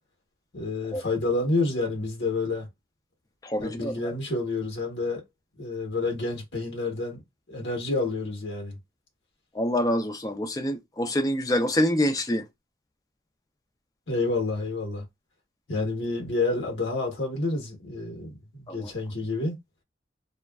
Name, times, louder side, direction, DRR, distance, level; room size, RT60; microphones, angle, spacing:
voice 1, 0.5-2.7 3.6-5.2 5.6-7.2 7.5-8.8 14.1-15.0 15.7-19.6, left 3 dB, 90° left, 1.1 m, -29 dB
voice 2, 3.4-4.1 9.6-12.4 18.7-18.9, left 1 dB, 20° left, 0.5 m, -26 dB
2.8 x 2.4 x 2.3 m
head